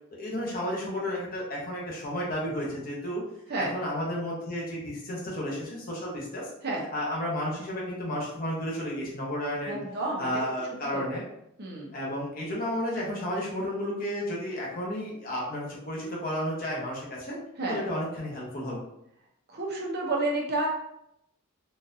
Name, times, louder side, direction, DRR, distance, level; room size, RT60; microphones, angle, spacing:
voice 1, 0.1-3.2 3.6-6.5 6.9-9.8 10.2-11.2 11.9-17.4 17.7-18.8, equal, 40° left, -4 dB, 0.9 m, -32 dB
voice 2, 9.7-10.4 11.6-11.9 17.6-17.8 19.5-20.7, right 2 dB, 45° right, -1 dB, 0.8 m, -30 dB
3.9 x 2.5 x 2.6 m, 0.78 s
head